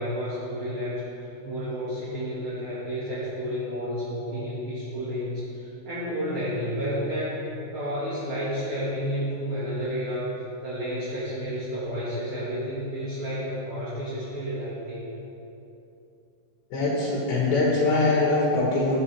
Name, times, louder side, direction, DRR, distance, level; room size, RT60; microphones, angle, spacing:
voice 1, 0.0-7.4 7.7-15.1, equal, 45° right, -9 dB, 2.0 m, -31 dB
voice 2, 16.7-19.0, left 2 dB, 70° left, -5 dB, 3.3 m, -23 dB
15.5 x 8.0 x 3.4 m, 2.8 s
omnidirectional pair, 4.7 m